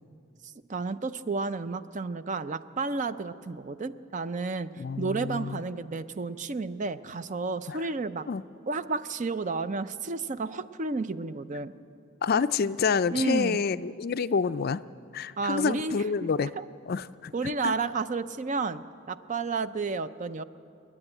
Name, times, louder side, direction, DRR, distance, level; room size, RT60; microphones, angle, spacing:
voice 1, 0.4-8.3 8.7-11.7 13.1-13.6 15.4-16.6 17.3-20.4, right 4 dB, 35° right, 13 dB, 0.5 m, -32 dB
voice 2, 4.8-5.6 7.7-7.8 8.3-8.4 12.2-14.8 15.1-16.5 16.9-17.3 17.6-17.7, left 5 dB, 50° left, 14 dB, 0.4 m, -28 dB
29.5 x 9.9 x 8.8 m, 2.5 s
head